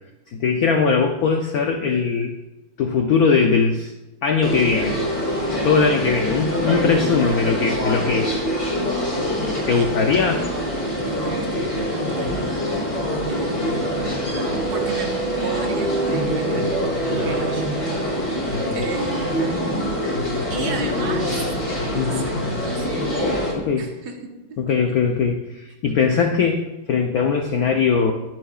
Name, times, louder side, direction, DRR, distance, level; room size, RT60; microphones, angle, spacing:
voice 1, 0.3-2.3 2.8-3.9 4.2-5.0 5.6-8.4 9.4-10.4 12.2-12.3 18.5-18.8 21.9-22.3 23.5-23.9 24.6-28.1, left 5 dB, 70° left, 4 dB, 0.8 m, -20 dB
sound 1, 4.4-23.5, equal, 35° left, 3.4 m, -24 dB
voice 2, 9.7-10.0 11.0-12.8 13.3-14.1 14.7-16.7 17.2-17.8 18.7-20.0 20.5-21.4 21.9-23.1 23.8-25.0, right 4 dB, 50° right, 1 dB, 1.8 m, -34 dB
21.0 x 7.6 x 2.4 m, 1.0 s
omnidirectional pair, 2.3 m